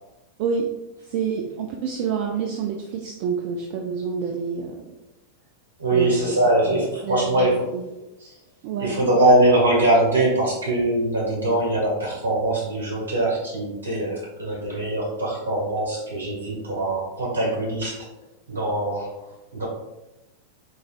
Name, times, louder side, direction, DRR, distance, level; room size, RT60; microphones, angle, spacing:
voice 1, 1.1-4.8 5.9-6.2 6.7-7.9 8.6-9.0, right 6 dB, 45° right, 1 dB, 0.3 m, -28 dB
voice 2, 5.8-7.7 8.2-8.3 8.8-18.1 18.5-19.2 19.5-19.7, right 1 dB, 70° right, -4 dB, 1.4 m, -22 dB
3.8 x 3.0 x 2.4 m, 0.99 s
figure-of-eight pair, 90°, 0 cm